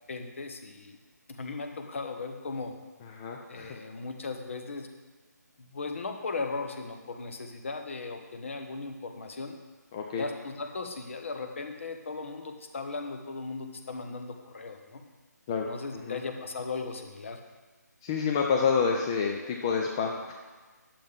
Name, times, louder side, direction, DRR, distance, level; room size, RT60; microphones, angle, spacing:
voice 1, 0.1-1.0 1.3-2.7 3.5-4.9 5.6-9.5 10.2-15.0 15.7-17.4, left 4 dB, 45° left, 6 dB, 1.0 m, -37 dB
voice 2, 3.1-3.8 9.9-10.3 15.5-15.7 15.9-16.2 18.0-20.3, left 5 dB, 15° left, 1 dB, 0.4 m, -28 dB
10.0 x 7.0 x 3.6 m, 1.4 s
figure-of-eight pair, 155°, 10 cm